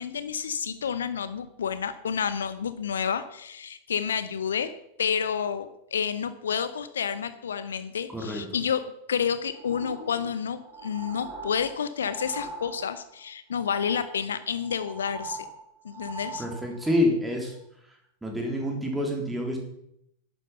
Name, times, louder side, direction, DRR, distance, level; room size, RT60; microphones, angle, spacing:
voice 1, 0.0-4.7 5.0-8.8 9.1-15.5 15.8-16.4, left 7 dB, 65° left, 13 dB, 0.7 m, -30 dB
voice 2, 8.1-8.4 16.4-17.5 18.2-19.6, left 1 dB, 5° right, 0 dB, 3.5 m, -27 dB
sound 1, 9.5-13.2 13.5-14.2 14.5-17.0 17.6-17.7, right 3 dB, 35° right, 3.5 m, -42 dB
11.5 x 9.1 x 5.7 m, 0.77 s
figure-of-eight pair, 90°, 0 cm